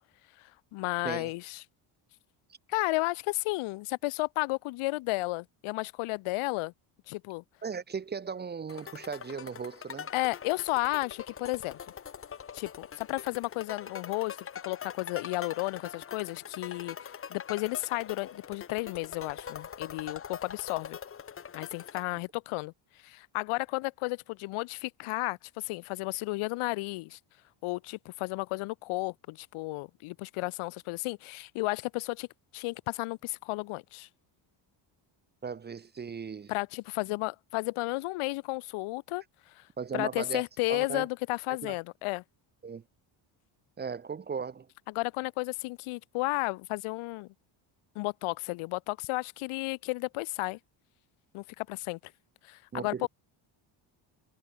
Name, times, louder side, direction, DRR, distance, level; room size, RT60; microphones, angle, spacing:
voice 1, 0.7-1.6 2.7-6.7 7.1-7.4 10.1-11.8 12.5-14.4 14.7-21.0 21.5-22.7 23.0-27.2 27.6-32.3 32.5-34.1 36.5-39.2 39.6-39.7 39.9-42.2 44.9-47.3 48.0-50.6 51.3-52.0 52.4-53.1, left 22 dB, 85° left, 0.8 m, -33 dB
voice 2, 7.6-10.1 35.4-36.5 39.8-40.4 40.7-41.1 41.6-41.7 42.6-42.8 43.8-44.7 52.7-53.1, right 6 dB, 20° right, 0.6 m, -37 dB
sound 1, 8.7-22.0, left 7 dB, 25° left, 1.1 m, -43 dB
cardioid pair, 140°, 49 cm